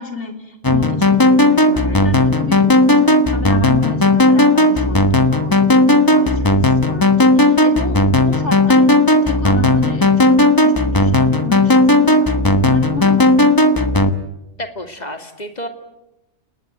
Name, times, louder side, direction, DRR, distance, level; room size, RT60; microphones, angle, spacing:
voice 1, 0.0-13.5, left 3 dB, 80° left, 5 dB, 3.9 m, -30 dB
sound 1, 0.6-14.1, left 2 dB, 20° left, 1.2 m, -14 dB
voice 2, 14.6-15.7, equal, 40° left, 6 dB, 2.6 m, -30 dB
29.0 x 19.0 x 9.3 m, 0.96 s
omnidirectional pair, 1.2 m